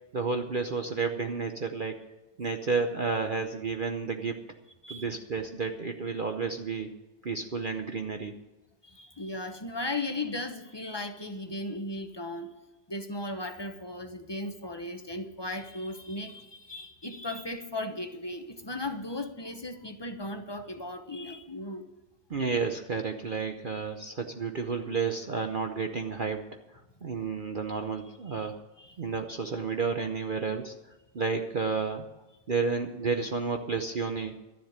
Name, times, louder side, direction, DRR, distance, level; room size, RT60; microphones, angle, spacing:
voice 1, 0.1-2.0 2.4-4.4 4.9-6.9 7.2-8.3 22.3-26.4 27.0-28.6 29.0-30.7 31.1-32.1 32.5-34.4, right 5 dB, 60° right, 5 dB, 0.5 m, -31 dB
voice 2, 8.8-12.5 12.9-21.9 28.3-28.5 28.8-29.0, left 2 dB, 25° left, 6 dB, 0.6 m, -36 dB
12.5 x 7.5 x 9.8 m, 1.1 s
omnidirectional pair, 1.9 m